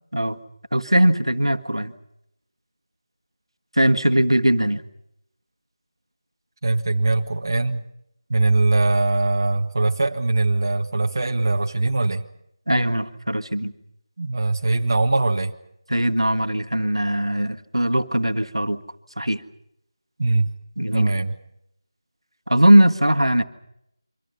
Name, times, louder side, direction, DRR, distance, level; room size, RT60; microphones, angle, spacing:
voice 1, 0.7-1.9 3.8-4.8 12.7-13.7 15.9-18.8 19.2-19.4 20.8-21.1 22.5-23.4, right 1 dB, 80° right, 8 dB, 1.6 m, -19 dB
voice 2, 6.6-7.8 8.3-12.2 14.2-15.5 20.2-20.5 20.9-21.3, right 2 dB, 40° right, 4 dB, 1.4 m, -21 dB
27.5 x 25.0 x 5.6 m, 0.77 s
figure-of-eight pair, 165°, 3 cm